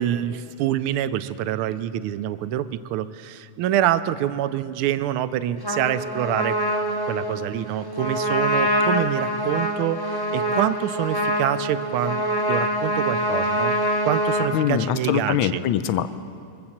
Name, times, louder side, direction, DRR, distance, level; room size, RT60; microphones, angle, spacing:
voice 1, 0.0-6.6 7.1-13.8 14.0-15.6, right 12 dB, 80° right, 14 dB, 1.4 m, -26 dB
Trumpet, 5.6-14.5, equal, 20° left, 0.7 m, -25 dB
voice 2, 14.5-16.2, left 10 dB, 75° left, 13 dB, 1.3 m, -23 dB
23.0 x 7.7 x 7.2 m, 2.3 s
omnidirectional pair, 2.4 m